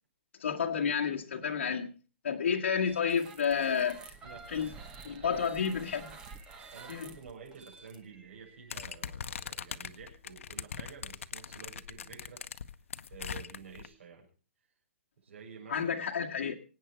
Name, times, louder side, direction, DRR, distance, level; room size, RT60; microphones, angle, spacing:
voice 1, 0.4-1.9 2.2-4.1 4.5-4.7 5.0-6.1 6.9-7.1 15.7-16.5, left 7 dB, 65° left, 1.8 m, -30 dB
sound 1, 2.8-8.7, right 4 dB, 10° right, 1.0 m, -50 dB
voice 2, 5.2-5.9 6.7-12.4 13.1-14.3 15.2-15.9, right 6 dB, 65° right, 7.6 m, -50 dB
sound 2, 8.7-13.9, left 7 dB, 80° left, 0.9 m, -41 dB
25.0 x 9.2 x 4.6 m
hypercardioid pair, 180°, 7 cm